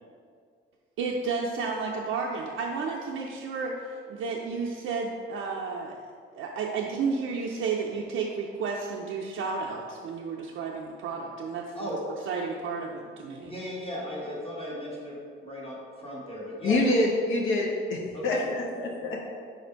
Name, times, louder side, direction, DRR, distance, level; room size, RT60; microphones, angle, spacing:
voice 1, 1.0-6.0 6.3-12.0 12.3-13.5, right 4 dB, 80° right, -1 dB, 0.4 m, -32 dB
voice 2, 13.4-15.2 15.4-16.8 18.1-18.4, equal, 25° left, -4 dB, 1.1 m, -36 dB
voice 3, 16.6-19.3, left 2 dB, 70° left, -2 dB, 0.6 m, -26 dB
4.7 x 2.5 x 4.4 m, 2.1 s
cardioid pair, 110°, 21 cm